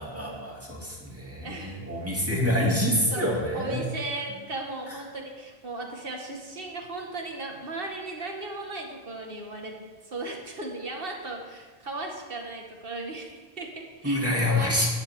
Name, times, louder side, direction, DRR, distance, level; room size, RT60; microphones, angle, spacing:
voice 1, 0.0-3.8 14.0-14.9, left 1 dB, 15° right, -4 dB, 2.8 m, -27 dB
voice 2, 1.4-1.9 3.1-3.2 3.5-9.8 10.0-14.2 14.5-14.9, right 2 dB, 60° right, 1 dB, 2.1 m, -36 dB
16.0 x 11.5 x 3.8 m, 1.4 s
omnidirectional pair, 1.1 m